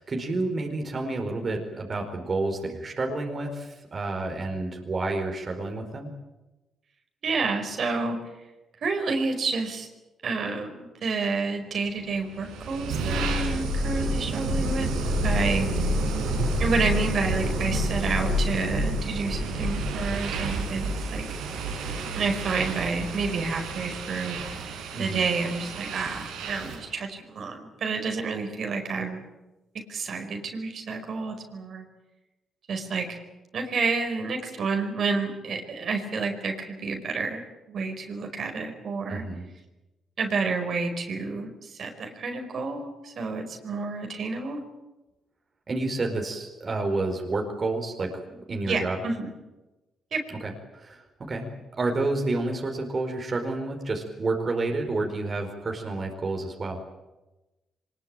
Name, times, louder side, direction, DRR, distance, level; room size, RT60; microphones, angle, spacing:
voice 1, 0.0-6.1 24.9-25.3 39.1-39.4 45.7-48.2 48.5-49.0 50.3-56.8, right 2 dB, 40° right, 3 dB, 4.7 m, -30 dB
voice 2, 7.2-8.2 8.8-9.9 10.2-15.9 16.6-21.2 22.1-24.6 25.0-29.2 29.9-31.9 32.7-33.2 33.5-37.4 37.7-39.2 40.2-44.6 48.7-49.3 50.1-50.2, right 4 dB, 60° right, 4 dB, 5.1 m, -29 dB
sound 1, 12.3-26.9, right 1 dB, 90° right, 5.4 m, -29 dB
24.0 x 21.0 x 9.0 m, 1.0 s
supercardioid pair, 65°, 0 cm